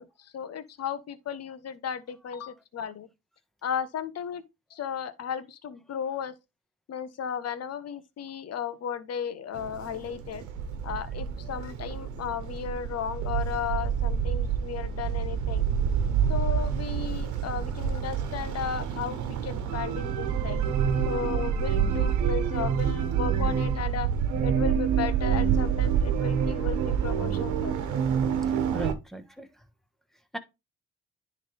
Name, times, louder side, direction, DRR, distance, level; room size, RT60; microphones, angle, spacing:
voice 1, 0.0-3.1 3.6-4.4 4.7-6.3 6.9-10.4 10.8-15.6 16.3-20.6 21.1-24.1 24.4-28.0, left 8 dB, 60° left, 1.0 m, -35 dB
sound 1, 9.5-28.9, right 7 dB, 85° right, 1.2 m, -27 dB
voice 2, 28.5-29.6 30.3-30.4, right 1 dB, ahead, 1.4 m, -38 dB
10.0 x 3.6 x 3.5 m
supercardioid pair, 70°, 29 cm